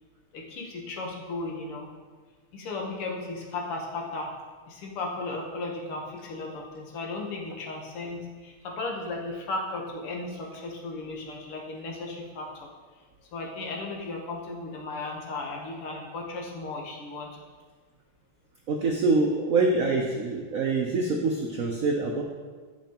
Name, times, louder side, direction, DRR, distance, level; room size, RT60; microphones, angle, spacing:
voice 1, 0.3-1.9 2.5-4.4 4.7-12.7 13.3-17.4, left 2 dB, 85° left, -1 dB, 2.1 m, -35 dB
voice 2, 18.7-22.2, right 3 dB, 80° right, 0 dB, 0.7 m, -25 dB
10.5 x 6.1 x 2.9 m, 1.5 s
omnidirectional pair, 2.4 m